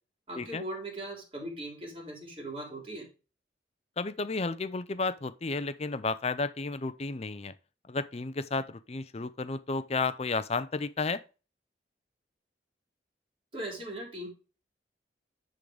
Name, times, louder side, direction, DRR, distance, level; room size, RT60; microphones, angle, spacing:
voice 1, 0.3-3.1 13.5-14.3, right 1 dB, 30° right, 3.4 m, -39 dB
voice 2, 4.0-7.5 7.9-11.2, left 3 dB, 35° left, 0.6 m, -32 dB
10.0 x 3.9 x 5.0 m
head